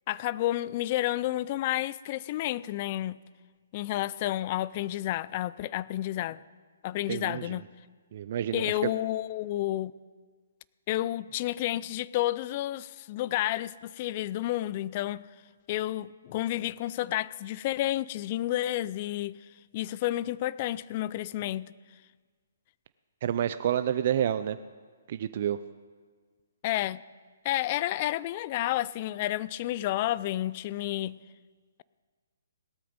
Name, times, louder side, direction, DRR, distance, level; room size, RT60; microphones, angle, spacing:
voice 1, 0.1-3.2 3.7-6.4 6.8-7.6 8.5-9.9 10.9-15.2 15.7-19.4 19.7-21.7 26.6-27.0 27.4-31.2, left 14 dB, 35° left, 19 dB, 0.4 m, -30 dB
voice 2, 7.1-7.5 8.1-8.8 23.2-24.6 25.1-25.6, right 10 dB, 45° right, 12 dB, 0.5 m, -29 dB
18.0 x 13.0 x 5.2 m, 1.5 s
hypercardioid pair, 160°, 0 cm